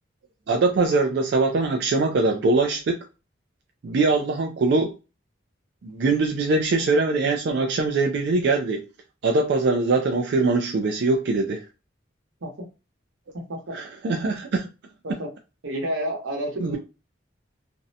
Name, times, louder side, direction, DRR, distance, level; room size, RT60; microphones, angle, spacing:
voice 1, 0.5-3.1 3.8-4.9 5.8-8.9 9.2-11.7 13.7-14.7 16.6-16.8, right 3 dB, 55° right, 0.3 m, -22 dB
voice 2, 15.6-16.8, right 1 dB, 85° right, 0.9 m, -29 dB
2.5 x 2.1 x 2.6 m
head